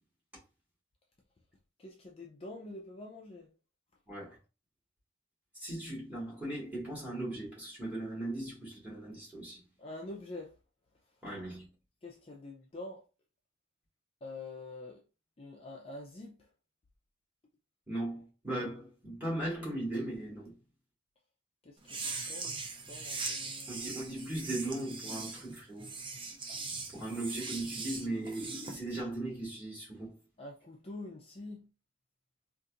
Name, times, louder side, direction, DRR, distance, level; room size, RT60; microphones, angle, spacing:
voice 1, 1.8-3.5 9.8-10.5 12.0-13.0 14.2-15.0 15.4-16.5 21.6-22.6 22.9-23.7 30.4-31.7, left 2 dB, 30° left, 0.4 m, -46 dB
voice 2, 5.5-9.6 11.2-11.7 17.9-20.5 23.7-25.9 26.9-30.1, right 1 dB, 10° right, 1.8 m, -38 dB
sound 1, 21.8-28.8, right 4 dB, 25° right, 0.5 m, -40 dB
4.0 x 2.5 x 2.5 m
head